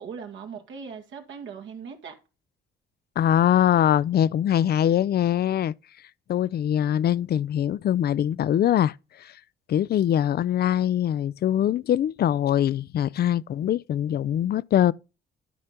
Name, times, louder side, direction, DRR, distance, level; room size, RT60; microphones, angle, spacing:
voice 1, 0.0-2.1, right 6 dB, 75° right, 2.2 m, -39 dB
voice 2, 3.2-5.7 6.3-9.3 9.7-14.9, left 10 dB, 55° left, 0.5 m, -23 dB
12.0 x 5.2 x 4.4 m
cardioid pair, 90°, 20 cm